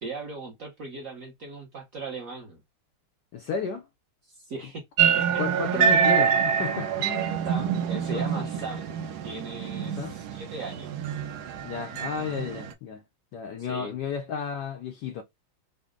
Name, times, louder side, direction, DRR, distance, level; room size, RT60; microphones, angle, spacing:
voice 1, 0.0-2.6 4.3-4.8 5.1-6.0 7.4-8.9 9.2-10.9 13.7-13.9, right 3 dB, 55° right, 0.9 m, -38 dB
voice 2, 3.3-3.8 5.4-7.5 8.1-8.5 10.0-10.2 11.6-13.0 13.3-15.2, left 6 dB, 90° left, 0.9 m, -33 dB
sound 1, 5.0-12.7, right 8 dB, 80° right, 0.9 m, -26 dB
4.0 x 2.1 x 3.6 m
omnidirectional pair, 2.4 m